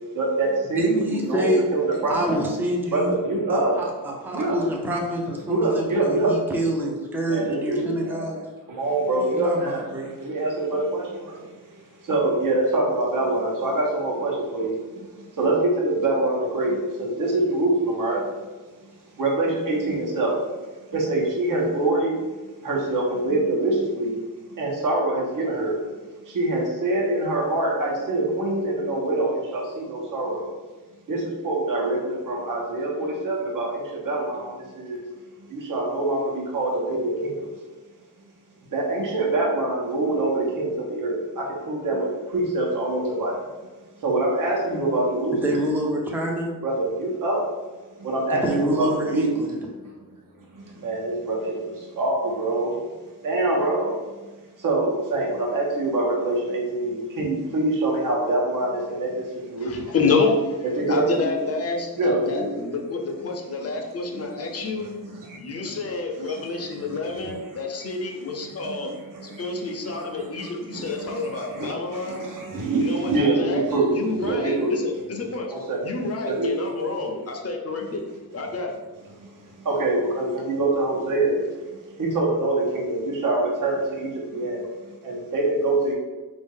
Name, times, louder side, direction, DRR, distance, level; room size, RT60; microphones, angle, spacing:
voice 1, 0.1-2.2 2.9-3.8 4.3-4.6 5.5-6.4 7.3-18.5 18.8-18.9 19.2-20.4 20.9-24.2 24.5-25.8 26.2-30.5 31.1-35.1 35.4-37.5 38.7-43.5 44.0-45.6 46.6-47.5 48.0-49.9 50.5-52.9 53.2-59.9 60.6-61.3 62.0-62.6 63.6-63.7 64.1-64.5 64.8-65.1 66.2-67.6 68.0-75.0 75.5-75.9 76.2-76.5 77.8-77.9 79.2-85.9, right 2 dB, 60° right, -3 dB, 1.0 m, -25 dB
voice 2, 0.8-1.6 2.1-3.1 3.5-3.6 4.0-8.4 9.1-10.1 45.4-46.6 48.4-49.5, right 1 dB, 5° right, -1 dB, 0.5 m, -26 dB
voice 3, 59.6-60.6 60.9-64.9 65.4-68.9 69.2-72.3 72.7-73.6 73.9-75.5 75.8-78.0 78.3-78.7, left 3 dB, 40° left, 2 dB, 0.6 m, -28 dB
4.0 x 2.7 x 3.7 m, 1.3 s
wide cardioid pair, 135°, 36 cm